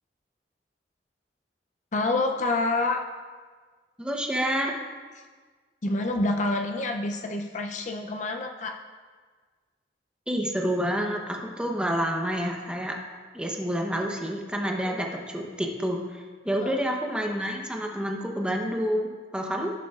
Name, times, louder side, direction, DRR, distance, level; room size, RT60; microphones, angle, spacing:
voice 1, 1.9-3.0 5.8-8.8 16.6-16.8, left 2 dB, 40° left, 4 dB, 0.5 m, -27 dB
voice 2, 4.0-4.8 10.3-13.0 13.3-19.7, equal, 5° right, 1 dB, 0.8 m, -28 dB
16.5 x 6.9 x 2.4 m, 1.5 s
head